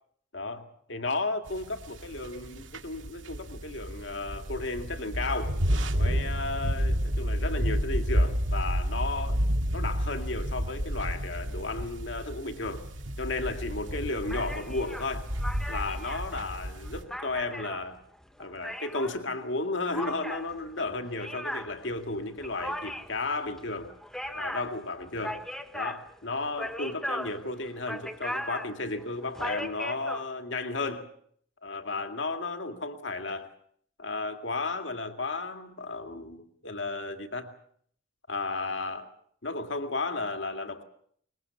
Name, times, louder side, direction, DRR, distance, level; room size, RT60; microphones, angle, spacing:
voice 1, 0.9-5.5 6.0-9.4 9.7-12.8 13.2-15.3 15.7-18.0 18.4-23.9 24.3-25.4 25.7-31.1 31.6-33.5 34.0-37.5 38.3-39.1 39.4-40.8, left 3 dB, 65° left, 6 dB, 2.2 m, -34 dB
sound 1, 1.5-17.0, equal, 75° right, 2.1 m, -30 dB
sound 2, 14.3-19.2 19.9-30.2, equal, ahead, 1.4 m, -38 dB
23.0 x 21.0 x 7.1 m, 0.63 s
head